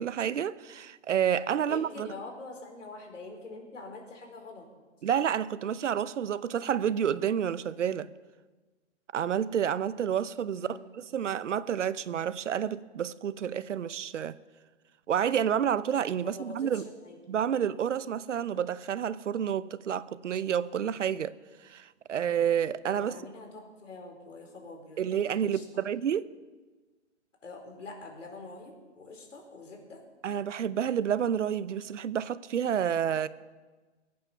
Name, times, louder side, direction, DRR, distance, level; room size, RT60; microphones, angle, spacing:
voice 1, 0.0-2.1 5.0-8.1 9.1-14.4 15.1-16.9 17.3-21.4 21.6-23.1 25.0-26.3 30.2-33.3, right 9 dB, 80° right, 0.8 m, -29 dB
voice 2, 1.6-4.7 10.5-10.9 16.2-17.4 22.9-25.6 27.4-30.0, left 3 dB, 85° left, 4.3 m, -45 dB
23.0 x 8.9 x 5.7 m
hypercardioid pair, 145°, 36 cm